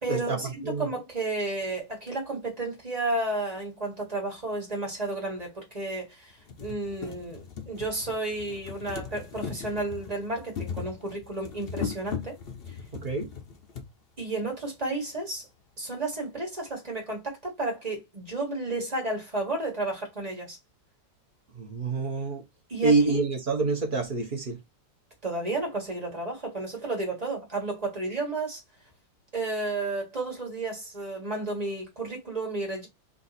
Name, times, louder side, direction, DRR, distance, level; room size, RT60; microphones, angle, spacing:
voice 1, 0.0-12.4 12.7-12.8 14.2-15.4 15.8-20.6 22.7-23.2 25.2-28.6 29.3-32.9, right 2 dB, 20° right, 1.5 m, -32 dB
sound 1, 4.3-4.4 5.4-5.5 5.9-6.0 6.3-13.9 14.8-14.9 15.1-15.2, left 6 dB, 65° left, 0.5 m, -38 dB
voice 2, 12.9-13.3 21.5-22.4 22.8-24.6, right 3 dB, 45° right, 0.6 m, -26 dB
3.8 x 2.6 x 4.0 m
omnidirectional pair, 2.1 m